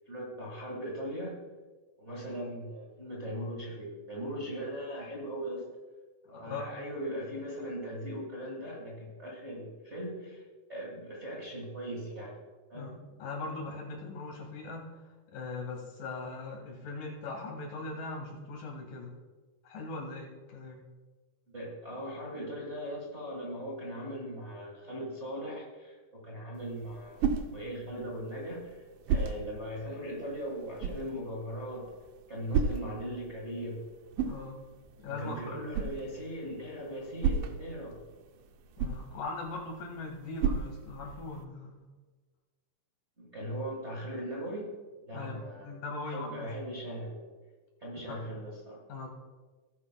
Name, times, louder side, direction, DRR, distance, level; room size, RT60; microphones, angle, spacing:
voice 1, 0.1-1.4 2.0-5.6 6.3-10.4 10.7-12.3 12.7-12.9 21.5-31.9 32.3-33.8 35.0-38.0 43.2-44.7 45.0-47.3 47.8-48.8, equal, 30° right, -3 dB, 1.4 m, -39 dB
voice 2, 6.3-6.6 12.7-19.2 19.6-20.8 34.3-34.6 35.0-35.6 38.8-41.8 45.1-46.5 48.1-48.2 48.9-49.1, left 3 dB, 90° left, 0 dB, 3.6 m, -40 dB
sound 1, 26.5-41.5, right 6 dB, 85° right, 2.3 m, -36 dB
17.5 x 9.6 x 2.3 m, 1.3 s
omnidirectional pair, 3.8 m